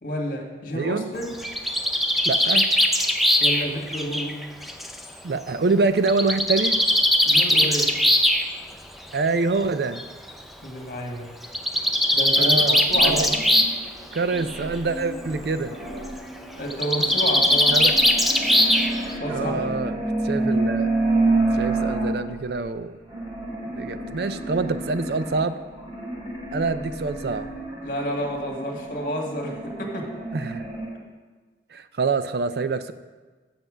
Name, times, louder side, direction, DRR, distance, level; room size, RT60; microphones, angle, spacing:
voice 1, 0.0-1.3 3.4-4.4 7.3-8.0 10.6-11.3 12.1-13.3 16.6-17.8 19.2-19.8 27.8-30.1, equal, 50° left, 1 dB, 1.7 m, -30 dB
voice 2, 0.7-1.1 2.3-2.7 5.2-6.8 9.1-10.0 12.4-13.3 14.1-15.8 17.7-17.9 19.3-20.0 20.2-20.9 21.5-23.0 23.8-25.6 26.5-27.5 30.3-30.7 31.7-32.9, right 3 dB, 65° right, 12 dB, 0.4 m, -25 dB
Bird, 1.2-5.0 6.1-8.4 9.5-9.6 10.0-10.1 10.3-10.4 11.4-13.8 14.1-14.6 16.7-19.1, left 1 dB, ahead, 0.5 m, -20 dB
sound 1, 12.9-22.6 23.1-30.9, right 2 dB, 30° right, 2.6 m, -29 dB
7.8 x 7.0 x 6.1 m, 1.3 s
head